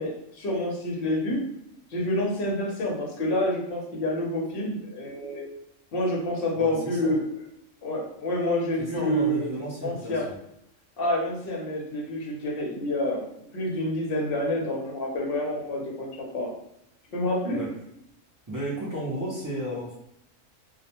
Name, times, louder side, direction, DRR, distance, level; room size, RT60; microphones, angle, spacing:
voice 1, 0.0-1.4 1.9-5.4 5.9-7.2 7.8-9.5 9.8-10.3 11.0-16.5 17.1-17.6, left 1 dB, 55° left, -1 dB, 0.8 m, -28 dB
voice 2, 6.5-7.0 8.8-10.3 17.5-17.7 18.5-19.9, right 1 dB, 35° right, -8 dB, 0.3 m, -33 dB
2.3 x 2.1 x 2.8 m, 0.79 s
omnidirectional pair, 1.3 m